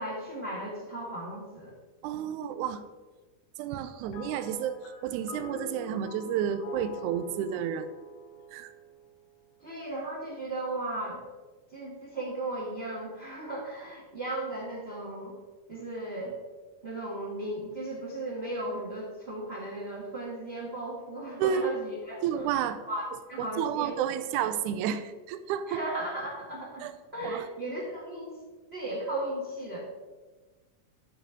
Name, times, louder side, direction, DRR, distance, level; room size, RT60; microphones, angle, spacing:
voice 1, 0.0-1.7 9.6-11.2 11.7-15.3 15.7-16.3 16.8-22.5 22.9-23.0 23.3-23.9 25.7-28.4 28.7-29.8, right 1 dB, 25° right, -4 dB, 1.5 m, -36 dB
voice 2, 2.0-2.8 3.6-7.9 8.5-8.7 21.4-21.7 22.2-22.8 23.4-25.8 26.8-26.9 27.2-27.5, right 9 dB, 80° right, 11 dB, 1.9 m, -31 dB
sound 1, 4.1-9.6, left 4 dB, 90° left, 1.1 m, -46 dB
11.5 x 4.7 x 4.9 m, 1.3 s
omnidirectional pair, 3.8 m